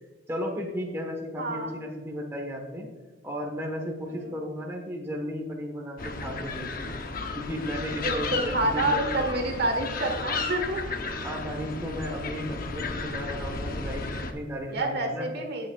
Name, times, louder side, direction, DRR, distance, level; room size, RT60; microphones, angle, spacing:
voice 1, 0.3-2.9 3.2-6.9 7.3-9.2 11.2-15.3, equal, 15° right, 0 dB, 1.2 m, -34 dB
voice 2, 1.4-1.7 4.1-4.4 8.0-10.8 14.7-15.7, right 2 dB, 55° right, 3 dB, 1.4 m, -28 dB
sound 1, 6.0-14.3, left 3 dB, 50° left, 0.8 m, -33 dB
17.0 x 6.7 x 2.4 m, 1.4 s
head